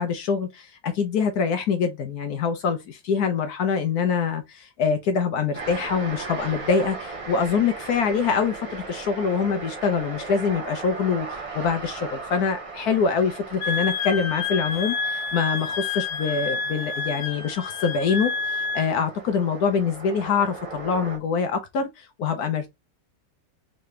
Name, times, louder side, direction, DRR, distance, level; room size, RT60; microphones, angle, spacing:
voice 1, 0.0-22.7, left 6 dB, 65° left, 1.0 m, -25 dB
sound 1, 5.5-21.2, right 3 dB, 35° right, 0.5 m, -38 dB
Wind instrument woodwind instrument, 13.6-18.9, left 4 dB, 90° left, 1.5 m, -29 dB
3.8 x 3.3 x 3.1 m
omnidirectional pair, 2.0 m